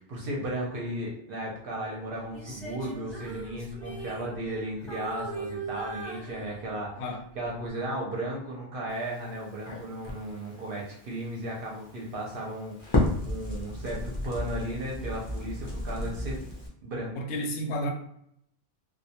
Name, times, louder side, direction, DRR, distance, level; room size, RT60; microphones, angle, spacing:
voice 1, 0.0-7.0 7.4-16.4 16.8-17.1, right 1 dB, 55° right, 0.7 m, -35 dB
Female singing, 2.3-4.6 4.9-6.9 7.5-7.7, right 2 dB, ahead, 0.8 m, -40 dB
Crackle, 8.9-16.7, left 1 dB, 35° left, 0.4 m, -34 dB
voice 2, 17.1-17.9, equal, 70° left, 0.8 m, -31 dB
2.3 x 2.2 x 2.7 m
omnidirectional pair, 1.2 m